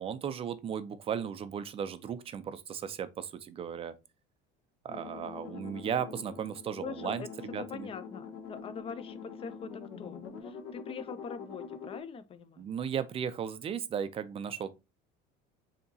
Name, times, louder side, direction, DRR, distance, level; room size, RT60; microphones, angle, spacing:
voice 1, 0.0-3.9 4.8-7.3 7.5-7.9 12.6-14.7, right 8 dB, 30° right, 0.4 m, -36 dB
sound 1, 4.9-12.0, left 6 dB, 70° left, 1.3 m, -45 dB
voice 2, 5.3-5.7 6.8-7.3 7.7-12.7, left 5 dB, 30° left, 0.5 m, -43 dB
6.8 x 2.9 x 2.7 m
cardioid pair, 140°, 20 cm